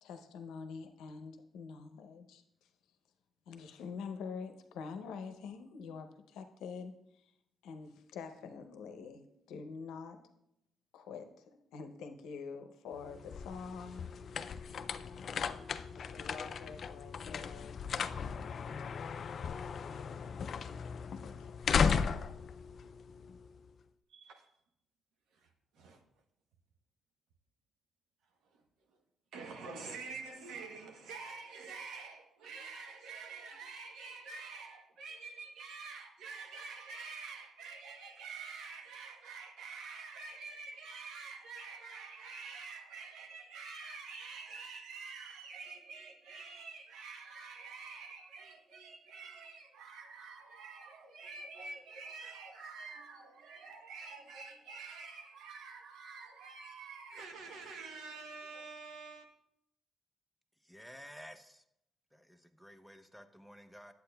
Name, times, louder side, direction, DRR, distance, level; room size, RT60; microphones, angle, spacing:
voice 1, 0.0-2.4 3.5-7.3 7.6-10.2 10.9-14.1 14.8-17.8 19.2-19.9 20.2-21.7, left 5 dB, 90° left, 0.6 m, -47 dB
sound 1, 13.0-23.7, left 6 dB, 55° left, 0.3 m, -36 dB
voice 2, 24.1-24.5 25.3-25.5 25.7-26.0 28.5-28.6 29.3-59.3, right 4 dB, 80° right, 1.0 m, -47 dB
voice 3, 60.6-61.6 62.1-63.9, equal, ahead, 0.6 m, -53 dB
8.6 x 7.9 x 2.3 m
cardioid pair, 90°, 0 cm